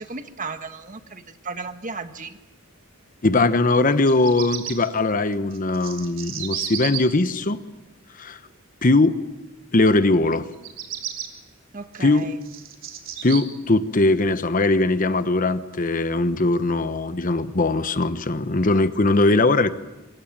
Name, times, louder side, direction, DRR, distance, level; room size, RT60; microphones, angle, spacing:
voice 1, 0.0-2.4 11.7-12.4, right 4 dB, 40° right, 8 dB, 1.6 m, -35 dB
voice 2, 3.2-7.6 8.2-8.4 8.8-9.2 9.7-10.5 12.0-12.3 13.2-19.7, left 2 dB, 40° left, 11 dB, 1.0 m, -20 dB
Bird vocalization bird call bird song, 3.9-4.7 5.5-7.0 10.5-11.3 11.9-13.4, right 10 dB, 70° right, 3.7 m, -32 dB
26.5 x 24.5 x 7.4 m, 1.1 s
head